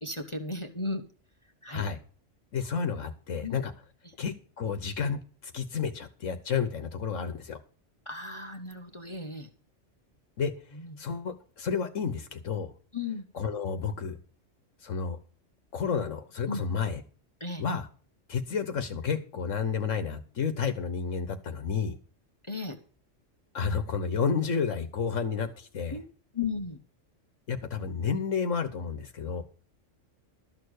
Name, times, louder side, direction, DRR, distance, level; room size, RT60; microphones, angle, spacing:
voice 1, 0.0-1.0 1.6-1.8 3.4-3.6 4.0-4.1 8.1-9.5 10.8-10.9 12.9-13.2 16.5-16.6 17.4-17.6 22.5-22.8 25.9-26.0 26.3-26.8, left 3 dB, 25° left, 6 dB, 1.1 m, -35 dB
voice 2, 1.7-2.0 2.5-3.7 4.2-7.6 10.4-10.5 11.0-12.7 13.3-14.2 14.8-15.2 15.7-17.0 17.6-17.9 18.3-22.0 23.5-26.0 27.5-29.4, left 6 dB, 80° left, 9 dB, 1.4 m, -31 dB
13.0 x 6.8 x 6.5 m, 0.43 s
omnidirectional pair, 1.3 m